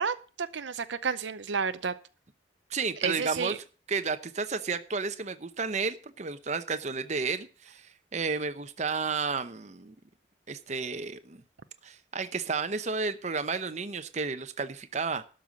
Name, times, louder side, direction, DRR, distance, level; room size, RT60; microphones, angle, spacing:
voice 1, 0.0-1.9 3.0-3.6, right 5 dB, 85° right, 12 dB, 0.7 m, -31 dB
voice 2, 2.7-3.6 3.9-9.9 10.5-11.4 11.8-15.2, right 4 dB, 40° right, 10 dB, 0.8 m, -32 dB
12.5 x 5.6 x 7.6 m, 0.37 s
head